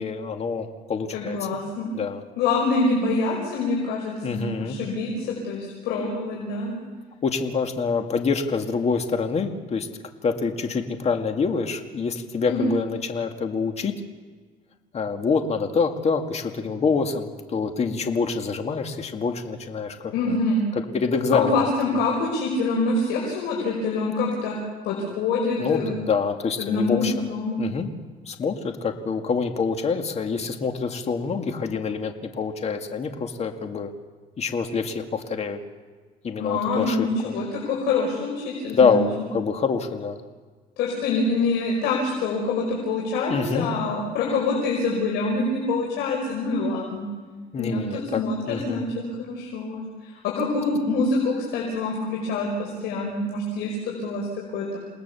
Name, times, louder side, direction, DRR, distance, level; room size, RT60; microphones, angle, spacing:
voice 1, 0.0-1.4 1.9-2.2 4.2-4.8 7.2-9.9 10.2-13.9 14.9-20.4 20.7-21.7 25.6-27.3 27.6-27.9 28.3-33.9 34.4-35.6 36.2-37.3 38.7-40.2 43.3-43.7 47.5-48.2 48.5-48.8, left 5 dB, 40° left, 5 dB, 2.2 m, -26 dB
voice 2, 1.1-1.9 2.4-6.7 12.5-12.7 20.1-20.6 21.3-24.6 24.8-26.0 26.6-27.6 36.4-39.0 40.8-47.0 47.6-48.9 49.2-54.8, left 3 dB, 85° left, -2 dB, 5.5 m, -25 dB
29.0 x 19.0 x 7.1 m, 1.4 s
cardioid pair, 110°, 17 cm